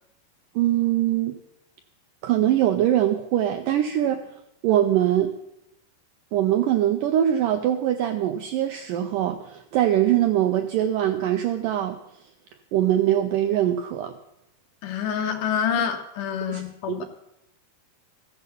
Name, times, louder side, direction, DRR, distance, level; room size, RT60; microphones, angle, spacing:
voice 1, 0.6-1.4 2.2-4.2 4.6-5.3 6.3-12.0 12.7-14.2 16.5-16.6 16.9-17.0, right 11 dB, 85° right, 6 dB, 1.9 m, -22 dB
voice 2, 14.8-17.0, left 8 dB, 65° left, 5 dB, 2.3 m, -27 dB
14.5 x 8.0 x 6.9 m, 0.82 s
omnidirectional pair, 4.5 m